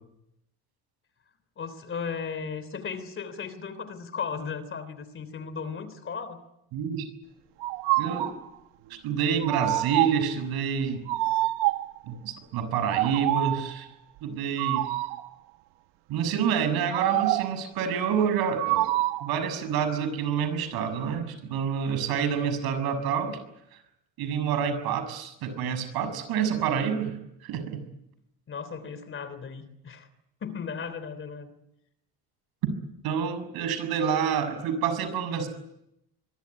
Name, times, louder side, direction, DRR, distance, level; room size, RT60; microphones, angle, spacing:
voice 1, 1.6-6.4 28.5-30.1 30.4-31.5, left 6 dB, 30° left, 14 dB, 3.3 m, -36 dB
voice 2, 6.7-7.1 8.0-8.3 9.0-11.2 12.1-13.9 14.2-14.9 16.1-18.9 19.2-23.4 24.2-27.1 27.4-27.8 33.0-35.5, right 7 dB, 65° right, 11 dB, 6.7 m, -28 dB
sound 1, 7.6-8.4 9.4-10.3 11.1-12.0 12.8-13.7 14.6-15.3 16.9-17.6 18.6-19.4, right 17 dB, 85° right, 1.5 m, -26 dB
25.0 x 23.0 x 9.7 m, 0.84 s
cardioid pair, 150°, 40 cm